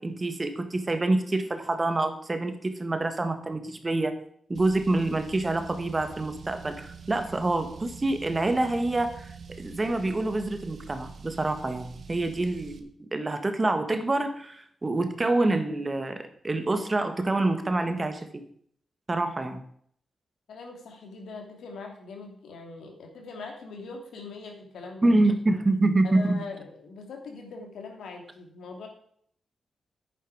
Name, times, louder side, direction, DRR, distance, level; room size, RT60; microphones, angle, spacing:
voice 1, 0.0-4.1 4.5-18.4 19.1-19.6 25.0-26.4, right 2 dB, 25° right, 8 dB, 1.5 m, -27 dB
Car, 4.5-12.8, right 5 dB, 60° right, 1.4 m, -45 dB
voice 2, 20.5-25.1 26.0-28.9, left 4 dB, 85° left, 2 dB, 2.8 m, -41 dB
10.0 x 9.3 x 4.9 m, 0.63 s
cardioid pair, 95°, 0 cm